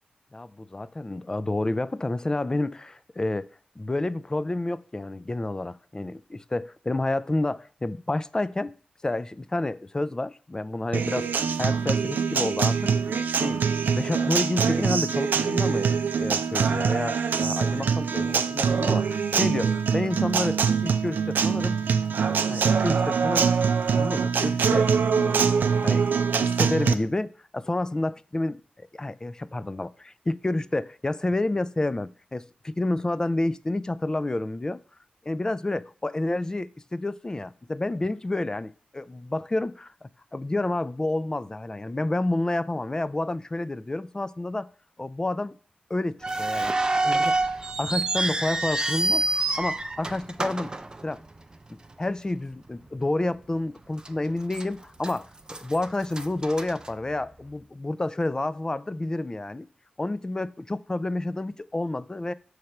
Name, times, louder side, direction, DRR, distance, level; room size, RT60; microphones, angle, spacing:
voice 1, 0.3-3.5 3.8-8.7 9.0-12.9 13.4-13.6 13.9-21.8 22.1-23.5 23.9-25.5 25.8-26.0 26.4-34.8 35.3-44.7 45.0-45.6 45.9-49.2 49.6-50.7 51.0-51.2 51.7-59.7 60.0-62.3, left 2 dB, 20° left, 0.3 m, -29 dB
Acoustic guitar, 10.9-26.9, right 6 dB, 90° right, 0.4 m, -24 dB
sound 1, 46.2-51.5 51.8-51.9 52.7-52.9 53.3-53.4 54.0-54.6 55.0-57.5, right 2 dB, 25° right, 0.5 m, -27 dB
6.4 x 3.2 x 5.7 m
wide cardioid pair, 80°, 3 cm